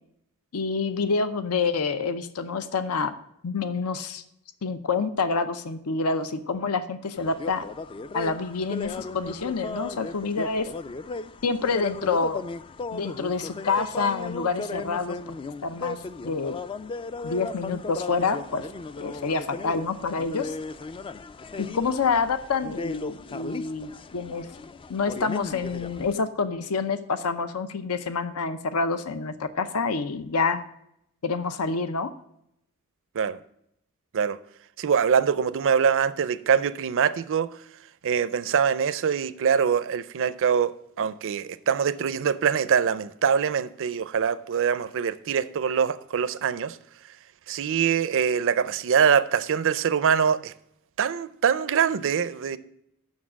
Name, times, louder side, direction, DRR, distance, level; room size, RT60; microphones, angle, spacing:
voice 1, 0.5-3.1 3.4-4.2 4.6-7.6 8.1-10.7 11.4-12.4 12.9-15.4 15.6-16.6 17.2-18.7 19.0-20.6 21.6-24.5 24.9-30.6 31.2-32.1, left 4 dB, 75° left, 0.6 m, -27 dB
sound 1, 7.2-26.1, left 3 dB, 25° left, 0.3 m, -36 dB
voice 2, 34.8-37.5 38.0-46.8 47.5-50.5 51.0-52.6, right 7 dB, 60° right, 0.5 m, -24 dB
7.3 x 6.4 x 7.3 m
head